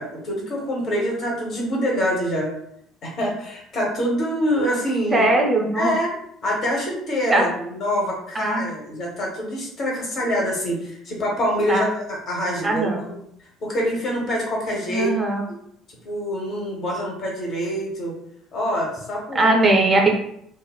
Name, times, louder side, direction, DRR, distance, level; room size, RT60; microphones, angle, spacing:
voice 1, 0.0-2.5 3.0-5.3 5.7-6.1 6.4-13.2 13.6-15.1 16.0-18.1 18.5-19.5, equal, 45° left, -2 dB, 0.9 m, -25 dB
voice 2, 5.1-5.9 7.3-7.5 8.3-8.7 11.7-11.8 12.6-13.1 14.9-15.4 19.3-20.1, right 2 dB, 25° right, 1 dB, 0.6 m, -19 dB
3.0 x 2.0 x 2.3 m, 0.70 s
figure-of-eight pair, 55°, 0 cm